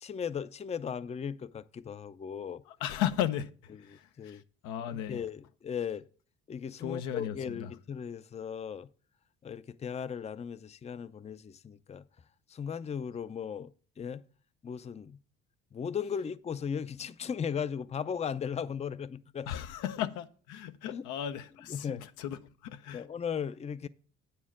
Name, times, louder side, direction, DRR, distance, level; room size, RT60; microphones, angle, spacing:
voice 1, 0.0-2.6 3.9-4.4 5.1-6.0 6.5-8.9 9.4-12.0 12.5-13.7 14.0-14.2 14.6-15.2 15.7-19.5 20.9-21.0 21.7-22.0 22.9-23.9, left 7 dB, 20° left, 0.5 m, -37 dB
voice 2, 2.7-5.2 6.8-7.7 19.5-23.1, left 11 dB, 80° left, 0.7 m, -36 dB
9.0 x 4.4 x 7.3 m
supercardioid pair, 65°, 30 cm